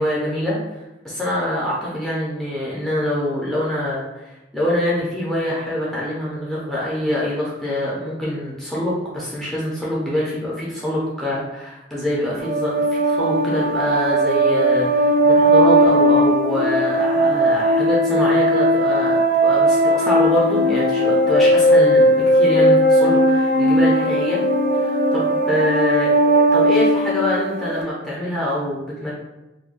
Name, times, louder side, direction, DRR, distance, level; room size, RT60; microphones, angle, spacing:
voice 1, 0.0-24.4 24.7-29.1, left 1 dB, 5° left, -7 dB, 0.5 m, -25 dB
sound 1, 12.4-27.8, equal, 50° right, 0.6 m, -17 dB
2.4 x 2.1 x 3.6 m, 1.0 s
head